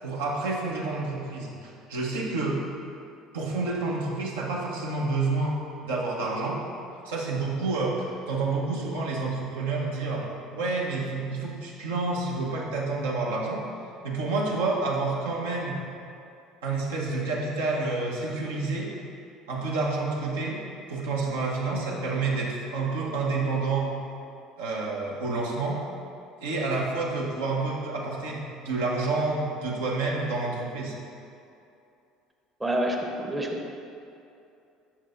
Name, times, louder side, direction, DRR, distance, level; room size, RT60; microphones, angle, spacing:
voice 1, 0.0-2.6 3.3-6.6 7.0-10.2 10.5-13.6 14.0-15.8 16.6-18.9 19.5-20.6 20.9-23.9 24.6-25.8 26.4-30.9, right 3 dB, 80° right, -3 dB, 0.9 m, -29 dB
voice 2, 32.6-33.7, right 1 dB, 15° right, 1 dB, 0.7 m, -28 dB
7.4 x 5.6 x 2.5 m, 2.6 s
hypercardioid pair, 65°, 0 cm